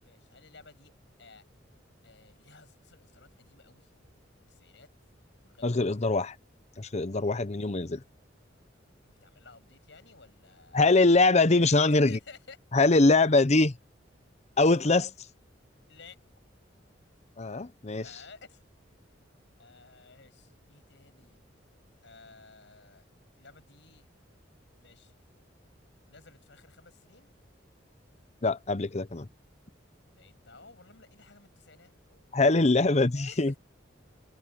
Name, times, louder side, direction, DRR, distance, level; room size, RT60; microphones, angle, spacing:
voice 1, 0.0-0.9 1.2-1.4 2.0-3.9 4.5-4.9 5.4-5.8 6.1-6.2 9.1-10.8 11.5-12.6 15.9-16.2 18.0-18.6 19.6-21.5 22.0-23.0 23.4-24.1 24.8-25.1 26.1-27.3 30.1-32.4 33.1-33.6, left 4 dB, 70° left, 7.4 m, -54 dB
voice 2, 5.6-6.3 6.8-8.0 10.7-12.2 12.7-13.7 14.6-15.1 17.4-18.0 28.4-29.3 32.3-33.5, left 3 dB, 35° left, 0.8 m, -23 dB
head